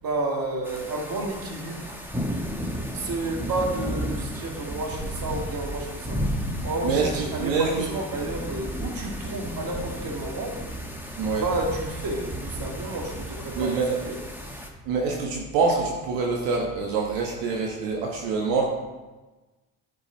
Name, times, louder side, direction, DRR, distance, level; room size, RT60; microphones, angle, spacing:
voice 1, 0.0-2.0 2.9-6.3 6.6-10.6 11.4-14.2, right 2 dB, 50° right, 0 dB, 2.3 m, -31 dB
sound 1, 0.6-14.7, equal, 5° right, 1.5 m, -33 dB
voice 2, 6.8-7.9 11.2-11.4 13.6-14.0 14.9-18.6, right 4 dB, 80° right, -1 dB, 1.4 m, -25 dB
10.5 x 5.3 x 4.5 m, 1.2 s
supercardioid pair, 70°, 44 cm